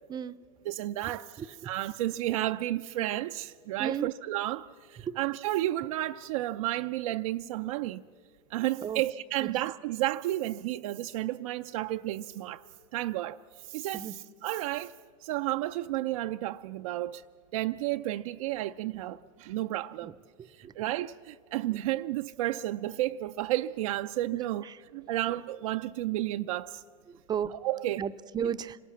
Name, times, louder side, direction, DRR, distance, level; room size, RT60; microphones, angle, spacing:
voice 1, 0.7-8.0 8.5-12.6 12.9-14.1 14.4-14.9 15.2-17.2 17.5-20.1 20.5-24.6 24.9-26.8 27.5-28.0, right 15 dB, 75° right, 0.5 m, -32 dB
voice 2, 1.4-1.7 3.8-4.1 5.0-5.2 8.8-9.0 9.4-9.5 13.9-14.2 20.0-20.1 20.4-20.7 24.6-24.8 27.1-27.6 28.0-28.8, right 8 dB, 25° right, 0.6 m, -34 dB
26.0 x 18.5 x 7.2 m
supercardioid pair, 115°, 18 cm